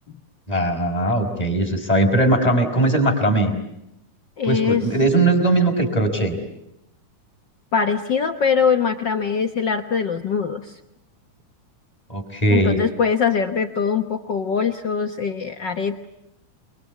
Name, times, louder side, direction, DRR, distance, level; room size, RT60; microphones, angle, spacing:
voice 1, 0.5-3.5 4.4-6.4 12.1-12.8, right 2 dB, 10° left, 2 dB, 4.9 m, -19 dB
voice 2, 4.4-4.8 7.7-10.8 12.5-16.1, left 6 dB, 70° left, 7 dB, 1.0 m, -22 dB
29.5 x 22.5 x 8.5 m, 0.83 s
omnidirectional pair, 3.7 m